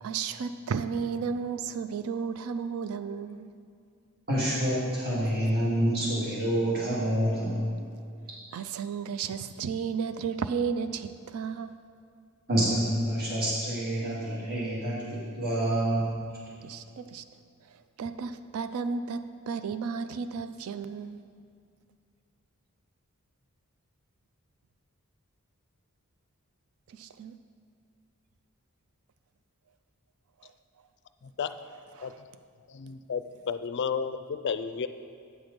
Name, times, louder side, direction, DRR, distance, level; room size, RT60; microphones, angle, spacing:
voice 1, 0.0-3.5 8.5-11.8 16.6-17.2 17.7-21.2 26.9-27.4 30.4-30.5 31.9-32.2, right 6 dB, 75° right, 11 dB, 0.4 m, -33 dB
voice 2, 4.3-7.6 12.5-15.0 15.3-16.1, right 1 dB, 45° right, -8 dB, 1.9 m, -27 dB
voice 3, 32.7-34.9, left 6 dB, 50° left, 10 dB, 0.4 m, -32 dB
8.8 x 6.1 x 5.1 m, 2.3 s
head